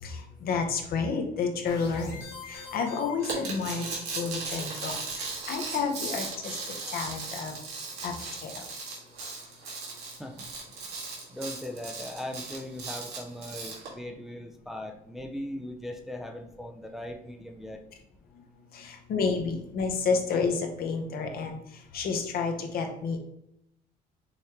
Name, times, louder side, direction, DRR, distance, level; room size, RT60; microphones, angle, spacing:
voice 1, 0.0-2.2 2.5-7.6 8.0-8.1 8.4-8.6 18.7-23.2, left 5 dB, 60° left, 4 dB, 0.9 m, -30 dB
sound 1, 1.7-4.1, left 4 dB, 80° left, 1.7 m, -45 dB
sound 2, 3.2-13.9, right 4 dB, 85° right, 1.8 m, -37 dB
voice 2, 10.2-10.5 11.3-17.8, left 1 dB, ahead, 3 dB, 0.4 m, -39 dB
5.6 x 3.1 x 2.9 m, 0.78 s
cardioid pair, 110°, 17 cm